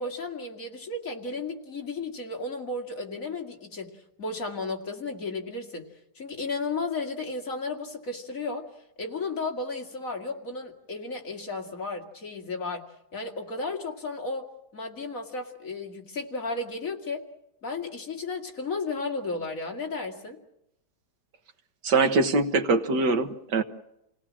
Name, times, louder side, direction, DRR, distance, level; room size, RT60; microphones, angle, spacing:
voice 1, 0.0-5.9 6.2-8.6 9.0-12.9 13.1-17.2 17.6-20.4, left 3 dB, 50° left, 2 dB, 2.6 m, -34 dB
voice 2, 21.8-23.6, right 3 dB, 75° right, 8 dB, 2.0 m, -23 dB
28.5 x 18.0 x 7.4 m, 0.84 s
omnidirectional pair, 1.9 m